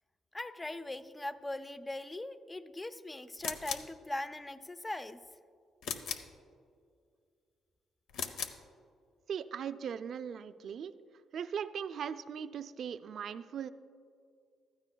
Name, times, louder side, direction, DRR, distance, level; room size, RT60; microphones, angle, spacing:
voice 1, 0.3-5.2, left 1 dB, 15° left, 12 dB, 0.5 m, -40 dB
sound 1, 3.4-4.0 5.8-6.4 8.1-8.6, left 6 dB, 85° left, 0.6 m, -38 dB
voice 2, 9.3-10.9 11.3-13.7, right 7 dB, 60° right, 12 dB, 0.4 m, -39 dB
15.0 x 13.0 x 2.3 m, 2.3 s
cardioid pair, 90°, 0 cm